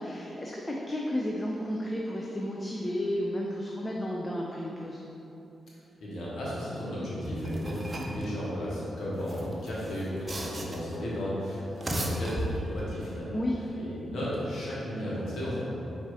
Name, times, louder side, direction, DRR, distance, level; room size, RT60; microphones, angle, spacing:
voice 1, 0.0-5.0 13.3-13.6, left 1 dB, 25° left, -2 dB, 0.5 m, -32 dB
voice 2, 6.0-13.4 13.8-15.7, equal, 70° left, -7 dB, 1.2 m, -34 dB
sound 1, 7.2-8.2 9.1-11.0 11.6-12.9, right 1 dB, 35° right, 0.6 m, -35 dB
4.5 x 2.7 x 4.1 m, 2.9 s
hypercardioid pair, 40°, 0 cm